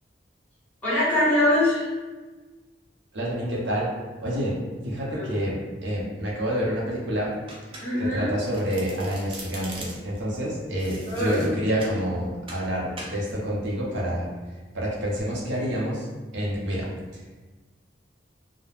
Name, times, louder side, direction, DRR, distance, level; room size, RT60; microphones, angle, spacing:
voice 1, 0.8-1.9 5.1-5.4 7.8-8.3 11.1-11.5, left 1 dB, 10° left, -11 dB, 1.1 m, -23 dB
voice 2, 3.1-3.9 4.2-4.6 4.8-7.3 8.0-14.3 14.7-16.1 16.3-17.3, equal, 75° right, -4 dB, 0.7 m, -28 dB
Domestic sounds home sounds, 7.5-8.2 8.5-10.2 10.8-12.0 12.5-12.7 13.0-13.2, right 2 dB, 30° right, 0.4 m, -41 dB
2.4 x 2.1 x 3.2 m, 1.3 s
head